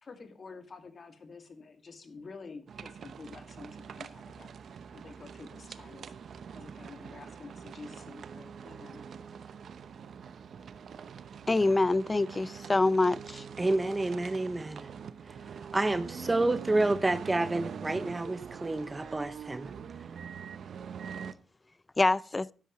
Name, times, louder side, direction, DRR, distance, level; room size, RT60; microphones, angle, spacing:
voice 1, 0.0-4.5 4.9-6.1 6.5-9.0, left 4 dB, 45° left, 2.2 m, -49 dB
sound 1, 2.7-21.3, right 7 dB, 65° right, 0.8 m, -44 dB
voice 2, 11.5-13.4 22.0-22.5, left 2 dB, 25° left, 0.4 m, -25 dB
voice 3, 13.6-14.9 15.3-15.4 15.7-19.7, right 2 dB, 20° right, 0.6 m, -29 dB
12.5 x 10.0 x 3.1 m
cardioid pair, 75°, 0 cm